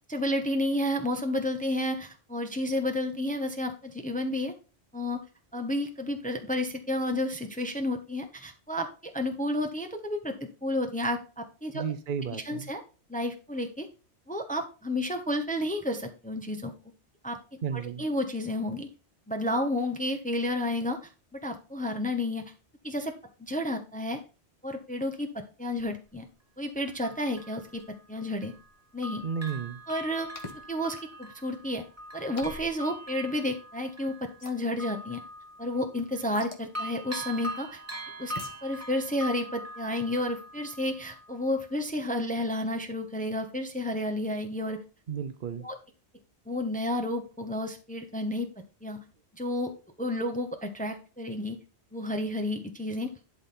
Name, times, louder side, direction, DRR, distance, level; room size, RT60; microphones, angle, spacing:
voice 1, 0.1-4.5 4.9-5.2 5.5-11.8 12.5-12.8 13.1-13.9 14.3-16.7 17.2-17.4 17.8-18.9 19.3-21.0 21.3-22.5 22.8-23.1 23.4-24.2 24.6-26.3 26.6-28.5 28.9-29.2 29.9-30.3 30.7-31.8 32.1-35.2 35.6-37.8 38.2-38.3 38.6-44.8 45.6-45.8 46.5-49.0 49.3-49.7 50.0-51.6 51.9-53.1, left 1 dB, 10° left, 5 dB, 0.8 m, -31 dB
voice 2, 11.7-12.7 17.6-18.0 29.2-29.8 45.1-45.7, right 7 dB, 55° right, 10 dB, 0.8 m, -33 dB
Bell, 25.8-25.9 26.8-28.7 29.0-36.4 36.7-41.4 41.8-41.9, equal, 15° right, 1.3 m, -42 dB
sound 1, 30.4-30.6 32.4-32.8 34.4-34.6 36.4-36.7 38.4-38.6, left 2 dB, 30° left, 1.3 m, -42 dB
11.0 x 3.9 x 4.3 m, 0.34 s
omnidirectional pair, 1.1 m